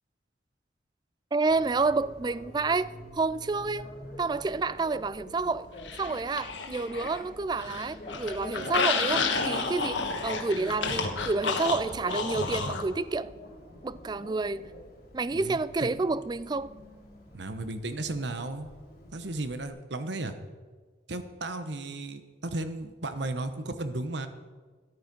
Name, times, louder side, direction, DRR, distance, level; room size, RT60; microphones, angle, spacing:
voice 1, 1.3-3.8 4.2-5.7 6.0-13.3 13.8-14.7 15.1-16.7, right 3 dB, 25° right, 0.3 m, -29 dB
Bicycle, 1.5-19.7, equal, 55° left, 3.8 m, -46 dB
sound 1, 5.8-7.2 7.5-12.9, left 4 dB, 80° left, 1.5 m, -30 dB
voice 2, 15.3-16.0 17.3-18.7 19.1-20.4 21.1-24.3, right 2 dB, 70° right, 1.1 m, -34 dB
13.5 x 11.0 x 5.4 m
head